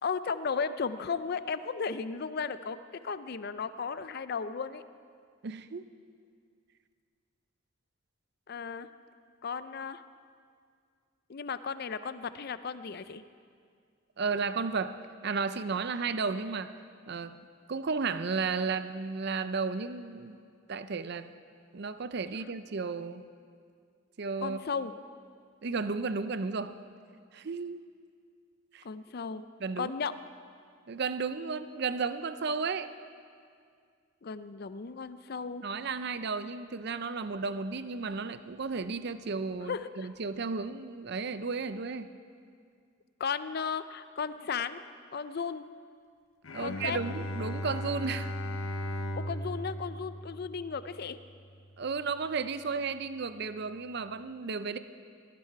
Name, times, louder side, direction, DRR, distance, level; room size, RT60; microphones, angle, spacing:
voice 1, 0.0-4.8 8.5-8.9 9.4-10.0 11.3-13.2 24.4-24.9 28.8-29.4 29.8-30.2 34.2-35.6 39.6-40.1 43.2-44.8 45.1-45.6 46.6-47.0 49.1-51.2, left 5 dB, 50° left, 13 dB, 0.5 m, -35 dB
voice 2, 5.4-5.9 14.2-15.0 15.2-16.7 17.1-17.4 17.7-20.4 20.7-21.3 21.7-23.2 24.2-24.6 25.6-26.7 27.3-27.8 28.7-28.8 29.6-29.9 30.9-32.9 35.6-42.1 46.5-48.3 51.8-54.8, right 4 dB, 55° right, 12 dB, 0.6 m, -33 dB
Bowed string instrument, 46.4-51.7, equal, 80° left, 0.9 m, -37 dB
17.5 x 13.0 x 4.7 m, 2.2 s
head